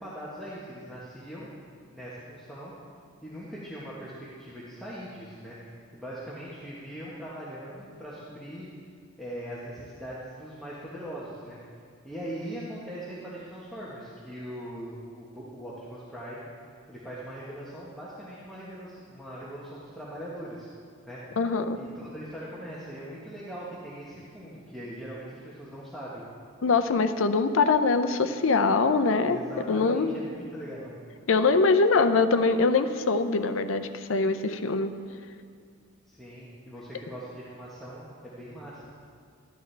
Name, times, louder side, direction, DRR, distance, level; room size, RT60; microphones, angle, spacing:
voice 1, 0.0-1.5 1.9-2.7 3.2-5.6 5.9-8.7 9.2-11.6 12.0-16.4 16.9-20.7 21.0-21.2 21.7-26.2 29.3-30.9 36.1-38.9, right 1 dB, ahead, -9 dB, 1.2 m, -41 dB
voice 2, 21.4-21.8 26.6-29.4 29.7-30.1 31.3-34.9, left 4 dB, 65° left, 9 dB, 0.5 m, -23 dB
13.0 x 10.0 x 3.4 m, 2.2 s
head